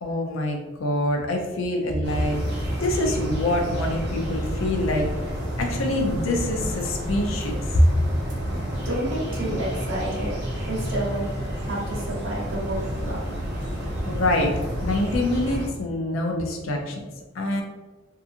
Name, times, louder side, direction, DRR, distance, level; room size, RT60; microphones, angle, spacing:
voice 1, 0.0-5.1 5.6-7.9 14.0-14.5 14.8-17.6, left 1 dB, 75° left, 2 dB, 0.5 m, -25 dB
sound 1, 2.0-15.7, equal, 55° right, 0.7 m, -29 dB
voice 2, 8.5-10.3 10.7-11.2 11.6-13.2, right 1 dB, 75° right, -6 dB, 1.1 m, -30 dB
2.7 x 2.4 x 2.5 m, 1.2 s
head